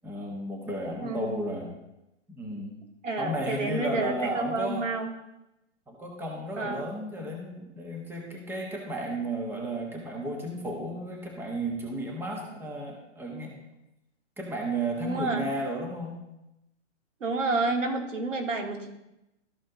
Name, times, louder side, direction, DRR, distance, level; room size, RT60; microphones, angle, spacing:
voice 1, 0.0-1.7 2.3-2.8 3.2-4.9 5.9-13.6 14.4-16.2, right 1 dB, 5° right, 0 dB, 1.3 m, -33 dB
voice 2, 1.0-1.5 3.0-5.1 6.6-6.8 15.0-15.5 17.2-18.9, right 3 dB, 85° right, 2 dB, 2.0 m, -30 dB
13.5 x 5.0 x 3.8 m, 0.91 s
hypercardioid pair, 145°, 37 cm